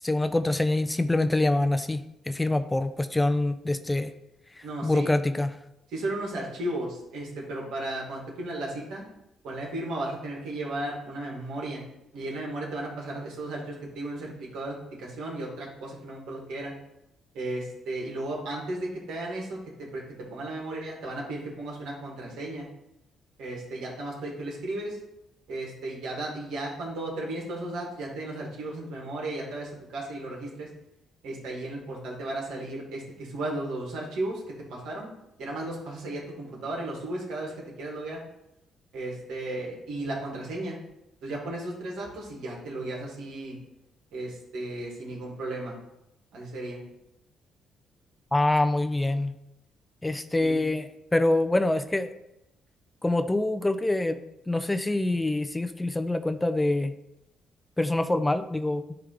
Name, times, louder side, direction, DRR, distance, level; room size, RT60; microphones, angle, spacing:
voice 1, 0.0-4.1 4.8-5.6 48.3-49.3 50.0-52.1 53.0-56.9 57.8-59.0, left 2 dB, 15° left, 11 dB, 0.4 m, -25 dB
voice 2, 4.6-5.1 5.9-9.0 9.4-11.8 12.1-16.7 17.3-20.0 20.3-22.6 23.4-25.0 25.5-30.7 31.2-34.4 34.7-35.1 35.4-37.5 37.8-38.2 38.9-40.8 41.2-43.6 44.1-45.8 46.3-46.8 50.4-50.7, right 1 dB, 85° right, -2 dB, 2.3 m, -35 dB
10.5 x 3.5 x 3.5 m, 0.86 s
cardioid pair, 90°, 0 cm